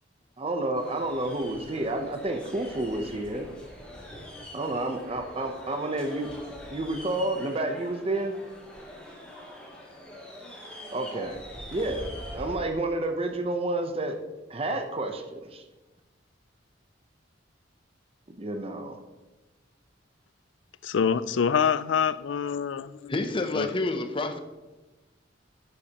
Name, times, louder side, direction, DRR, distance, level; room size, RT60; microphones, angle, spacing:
voice 1, 0.4-3.5 4.5-6.3 6.7-8.4 10.9-11.4 11.7-14.2 14.5-15.6 18.3-19.0, right 2 dB, 30° right, 6 dB, 0.7 m, -30 dB
sound 1, 0.7-12.6, equal, 5° left, 2.3 m, -43 dB
voice 2, 20.8-23.1 23.5-23.7, left 7 dB, 75° left, 16 dB, 0.4 m, -26 dB
voice 3, 23.1-24.4, left 2 dB, 25° left, 8 dB, 0.7 m, -28 dB
10.5 x 9.9 x 2.9 m, 1.2 s
head